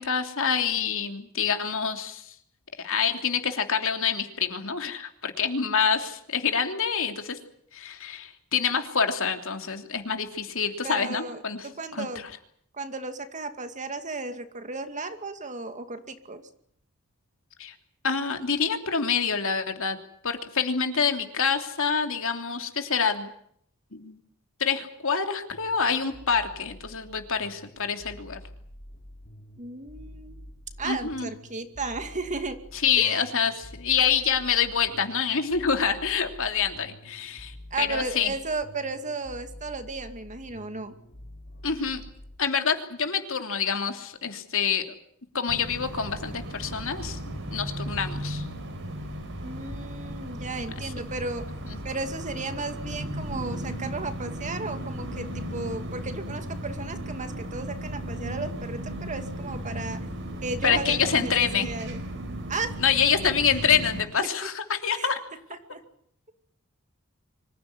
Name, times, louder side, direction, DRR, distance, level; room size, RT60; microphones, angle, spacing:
voice 1, 0.0-2.3 2.8-7.4 7.7-12.1 17.6-17.7 18.0-20.0 20.2-23.3 23.9-24.2 24.6-28.4 30.8-31.3 32.8-38.3 41.6-42.0 42.4-44.8 45.3-47.2 47.5-48.4 51.7-51.8 60.6-61.7 62.8-65.2, left 6 dB, 65° left, 6 dB, 3.1 m, -26 dB
voice 2, 10.8-12.2 12.7-16.4 29.6-30.4 30.8-32.6 33.0-33.2 37.7-40.9 49.4-51.5 51.8-60.0 60.4-62.0 62.5-62.8 64.9-65.1 65.7-65.8, right 3 dB, 35° right, 8 dB, 2.4 m, -34 dB
sound 1, 25.5-42.4, left 1 dB, 45° left, 3.4 m, -47 dB
sound 2, 45.5-64.1, right 1 dB, 60° right, 4.3 m, -35 dB
25.5 x 15.5 x 9.7 m, 0.66 s
head